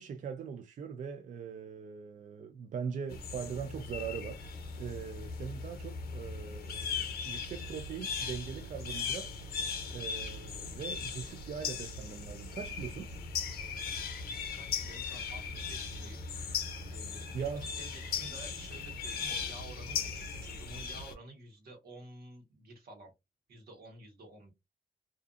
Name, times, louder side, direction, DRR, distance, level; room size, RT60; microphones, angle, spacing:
voice 1, 0.0-4.5 4.8-9.3 9.9-13.1 17.3-17.7, right 7 dB, 55° right, 0.4 m, -41 dB
sound 1, 3.1-21.1, left 5 dB, 90° left, 0.6 m, -38 dB
voice 2, 14.5-16.2 16.9-23.1 23.5-24.5, right 2 dB, 85° right, 1.2 m, -51 dB
2.5 x 2.4 x 2.4 m
cardioid pair, 115°, 15 cm